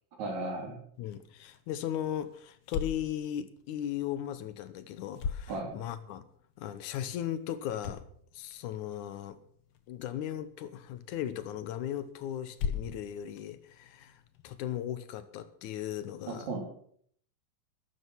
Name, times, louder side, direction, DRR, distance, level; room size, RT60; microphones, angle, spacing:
voice 1, 0.2-0.8 5.5-5.7 16.3-16.6, right 3 dB, 65° right, 2 dB, 4.3 m, -35 dB
sound 1, 0.9-14.5, left 6 dB, 60° left, 2.0 m, -43 dB
voice 2, 1.0-6.2 6.6-8.0 8.3-9.4 9.9-16.5, left 11 dB, 75° left, 13 dB, 2.3 m, -37 dB
13.0 x 12.5 x 6.1 m, 0.62 s
omnidirectional pair, 3.6 m